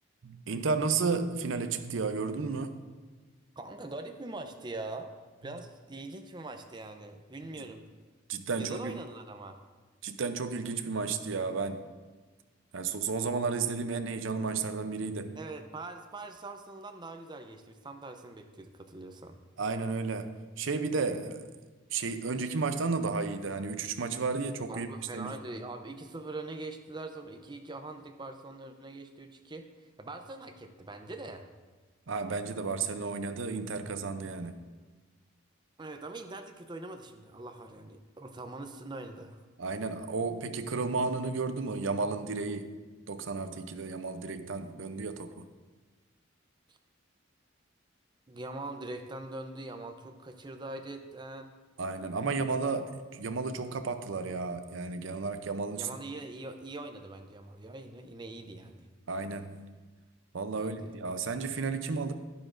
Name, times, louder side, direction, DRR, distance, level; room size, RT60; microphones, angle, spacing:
voice 1, 0.2-2.8 8.3-9.0 10.0-11.9 12.7-15.4 19.6-21.5 21.9-25.4 32.1-34.7 39.6-42.8 43.1-45.5 51.8-55.9 59.1-59.8 60.3-62.1, right 4 dB, 65° right, 9 dB, 0.6 m, -33 dB
voice 2, 3.6-5.1 5.4-7.9 8.6-9.6 15.4-19.4 24.7-29.7 30.0-31.4 35.8-39.4 46.7-46.8 48.3-51.5 55.8-58.9 60.6-60.9, right 2 dB, 20° right, 6 dB, 0.6 m, -42 dB
11.0 x 11.0 x 2.6 m, 1.4 s
head